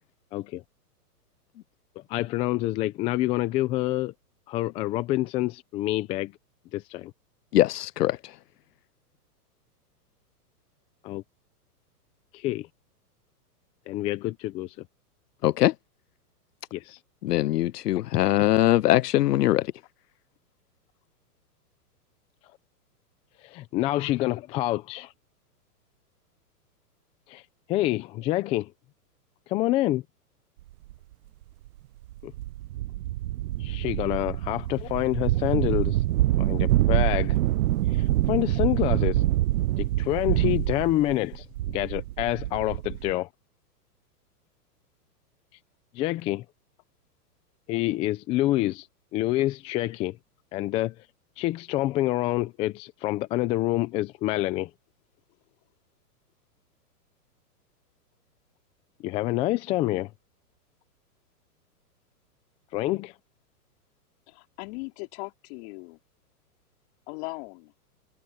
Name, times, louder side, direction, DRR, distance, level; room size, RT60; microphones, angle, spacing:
voice 1, 0.3-0.6 2.1-4.1 4.5-6.3 6.7-7.1 11.0-11.2 12.3-12.7 13.9-14.7 16.7-17.0 23.4-25.1 27.3-27.4 27.7-28.7 29.5-30.0 32.2-32.3 33.6-36.0 36.4-37.4 38.0-39.2 39.8-41.5 41.7-43.3 45.9-46.4 47.7-48.9 49.1-50.2 50.5-50.9 51.4-54.7 59.0-60.1 62.7-63.1, left 16 dB, 15° left, 0.5 m, -27 dB
voice 2, 7.5-8.2 15.4-15.7 17.2-19.7, left 14 dB, 80° left, 0.6 m, -22 dB
sound 1, 30.9-31.0 31.7-31.8 32.1-43.1, right 15 dB, 65° right, 0.6 m, -26 dB
voice 3, 64.3-66.0 67.1-67.7, left 29 dB, 40° left, 4.1 m, -39 dB
hypercardioid pair, 135°, 47 cm